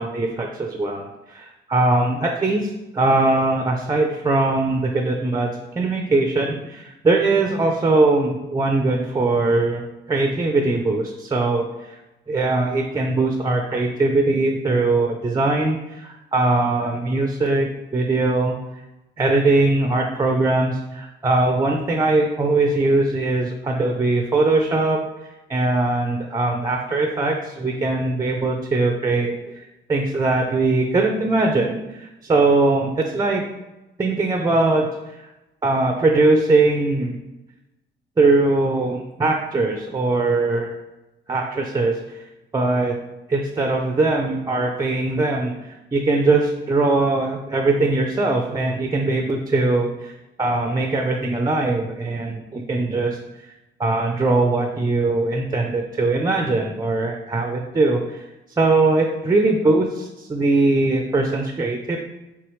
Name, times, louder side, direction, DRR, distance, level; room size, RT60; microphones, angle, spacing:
voice 1, 0.0-9.8 10.1-12.0 12.3-18.6 19.2-25.0 25.5-33.4 34.0-35.3 35.6-37.2 38.2-40.7 41.3-42.3 42.5-43.0 43.3-53.5 53.8-58.2 58.6-62.0, right 2 dB, 20° right, 3 dB, 0.4 m, -21 dB
4.7 x 3.4 x 3.1 m, 1.0 s
cardioid pair, 90°, 20 cm